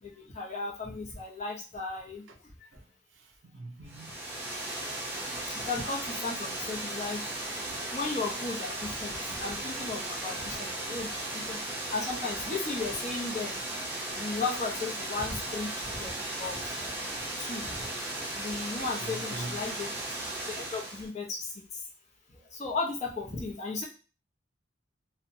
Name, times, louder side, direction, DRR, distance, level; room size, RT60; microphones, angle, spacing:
voice 1, 0.0-2.5 5.5-7.3 7.7-11.6 11.9-13.8 14.1-16.8 17.2-17.9 18.4-20.1 20.4-21.9 22.3-23.8, left 3 dB, 40° left, 0.7 m, -36 dB
voice 2, 2.7-4.3 10.3-10.8 19.0-19.7 22.4-22.5, right 2 dB, 80° right, 0.4 m, -46 dB
Water, 3.9-21.1, right 1 dB, 10° right, 0.6 m, -36 dB
2.7 x 2.1 x 2.6 m
head